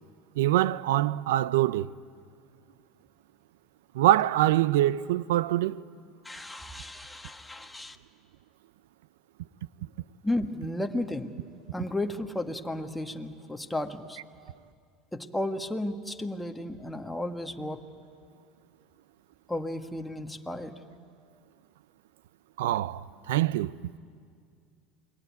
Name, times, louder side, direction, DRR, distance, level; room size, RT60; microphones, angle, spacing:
voice 1, 0.4-1.9 3.9-5.8 22.6-23.8, right 14 dB, 85° right, 0.6 m, -24 dB
voice 2, 6.2-8.0 10.2-11.3 11.7-14.2 15.1-17.8 19.5-20.8, left 1 dB, 5° left, 1.6 m, -33 dB
28.5 x 21.0 x 9.5 m
supercardioid pair, 100°, 0 cm